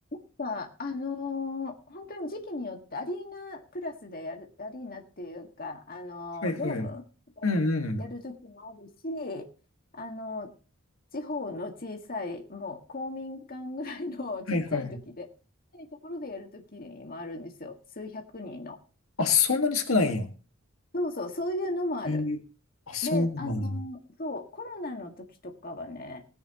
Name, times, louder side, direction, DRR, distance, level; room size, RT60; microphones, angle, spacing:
voice 1, 0.4-7.0 7.4-7.5 8.0-9.4 9.9-10.5 11.1-15.3 15.7-18.8 20.9-22.2 23.0-26.3, left 2 dB, 45° left, 4 dB, 1.7 m, -36 dB
voice 2, 6.4-6.9 7.4-8.1 14.5-14.9 19.2-20.3 22.1-22.4 22.9-23.7, left 3 dB, 80° left, 6 dB, 1.7 m, -26 dB
18.5 x 10.0 x 2.9 m, 0.35 s
head